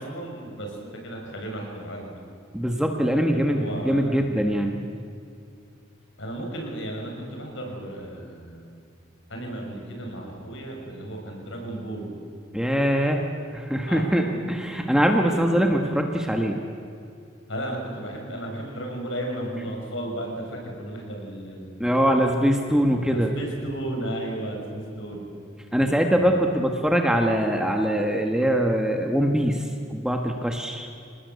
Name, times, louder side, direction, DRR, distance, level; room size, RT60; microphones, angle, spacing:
voice 1, 0.0-2.2 3.3-4.3 6.2-8.8 9.3-12.2 13.9-14.4 17.5-22.2 22.7-25.3 25.7-26.3, right 1 dB, 65° left, 1 dB, 6.3 m, -34 dB
voice 2, 2.5-4.8 12.5-13.2 13.5-16.6 21.8-23.3 25.7-29.6 29.9-30.9, equal, 5° right, 2 dB, 1.4 m, -22 dB
26.5 x 19.0 x 8.3 m, 2.5 s
head